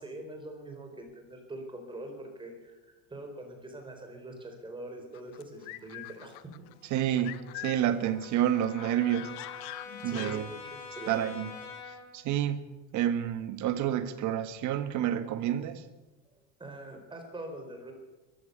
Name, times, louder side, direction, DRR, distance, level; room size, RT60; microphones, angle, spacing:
voice 1, 0.0-2.8 3.1-6.3 9.8-11.2 16.6-17.9, right 1 dB, 10° right, 4 dB, 4.6 m, -43 dB
sound 1, 5.1-7.9 8.2-10.4, left 18 dB, 75° left, 1.2 m, -43 dB
Brass instrument, 6.6-12.1, left 5 dB, 45° left, 7.7 m, -46 dB
voice 2, 6.9-9.3 10.0-10.5 11.1-11.5 12.1-12.6 12.9-15.8, right 11 dB, 50° right, 11 dB, 1.8 m, -29 dB
22.0 x 14.5 x 8.3 m, 1.1 s
cardioid pair, 160°, 39 cm